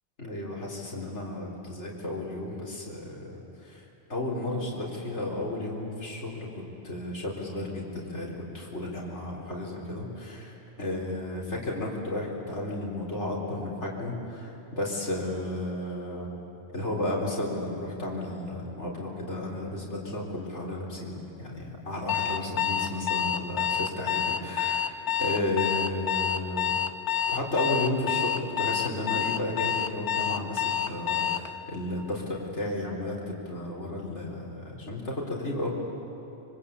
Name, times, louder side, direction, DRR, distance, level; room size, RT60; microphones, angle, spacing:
voice 1, 0.2-3.8 4.1-16.3 16.7-24.8 25.2-26.8 27.3-35.7, left 1 dB, 90° left, -3 dB, 4.6 m, -33 dB
Alarm, 22.1-31.5, left 10 dB, 75° left, 1.3 m, -28 dB
25.5 x 25.0 x 8.7 m, 2.9 s
omnidirectional pair, 1.2 m